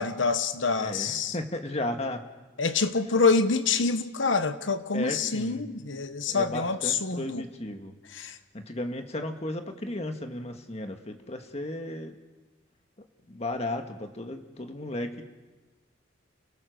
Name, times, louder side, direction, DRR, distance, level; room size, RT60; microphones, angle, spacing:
voice 1, 0.0-1.3 2.6-7.4 8.1-8.3, left 4 dB, 70° left, 1.1 m, -26 dB
voice 2, 0.8-2.2 4.9-5.7 6.3-8.0 8.5-12.2 13.3-15.2, left 1 dB, 35° left, 1.6 m, -34 dB
29.5 x 16.5 x 6.5 m
head